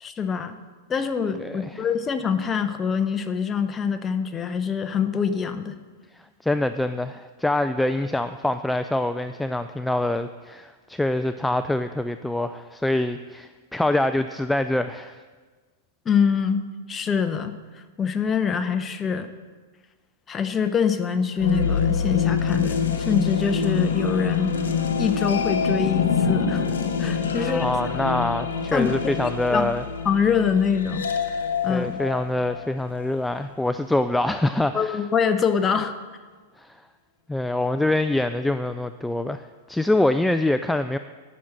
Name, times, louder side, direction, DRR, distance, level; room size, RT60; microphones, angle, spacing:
voice 1, 0.0-0.6 0.9-5.8 16.1-16.6 16.9-17.5 18.0-19.3 20.3-24.5 25.0-26.6 27.0-27.7 28.7-29.1 29.5-29.7 30.0-31.1 31.6-31.9 34.7-35.9, left 6 dB, 20° left, 9 dB, 0.8 m, -24 dB
voice 2, 1.4-1.8 6.4-15.2 27.4-29.8 31.7-35.0 36.6-36.8 37.3-41.0, left 1 dB, 5° left, 10 dB, 0.3 m, -25 dB
sound 1, 21.4-33.2, left 6 dB, 85° left, 1.5 m, -25 dB
11.0 x 6.5 x 7.3 m, 1.4 s
hypercardioid pair, 130°, 0 cm